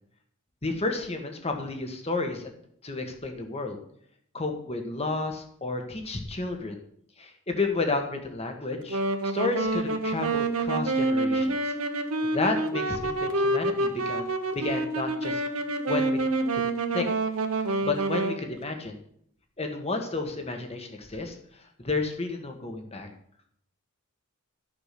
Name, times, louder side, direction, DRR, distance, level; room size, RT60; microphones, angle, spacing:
voice 1, 0.6-2.5 2.8-3.8 4.3-6.8 7.2-11.7 12.2-15.4 15.9-16.2 16.5-16.6 16.9-17.1 17.8-19.0 19.6-21.3 21.8-23.1, left 3 dB, 30° left, 4 dB, 1.7 m, -31 dB
Wind instrument woodwind instrument, 8.9-18.4, right 2 dB, 75° right, 1.3 m, -27 dB
13.0 x 6.8 x 6.0 m, 0.67 s
head